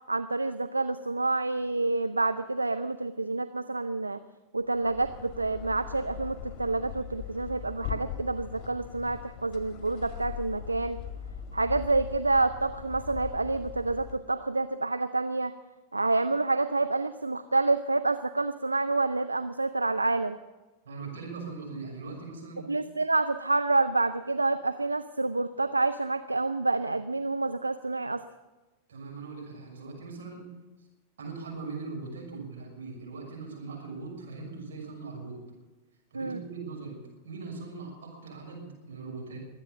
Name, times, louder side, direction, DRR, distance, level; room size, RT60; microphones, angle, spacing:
voice 1, 0.1-4.2 4.5-11.0 11.5-15.5 15.9-20.4 22.7-28.2 36.1-36.4, right 3 dB, 80° right, 10 dB, 0.5 m, -28 dB
sound 1, 4.7-14.3, left 10 dB, 35° left, 1.8 m, -41 dB
voice 2, 20.8-22.6 28.9-30.5 31.2-35.4 36.1-39.4, right 4 dB, 65° right, -1 dB, 6.2 m, -40 dB
23.0 x 9.0 x 7.0 m, 1.1 s
figure-of-eight pair, 90°, 0 cm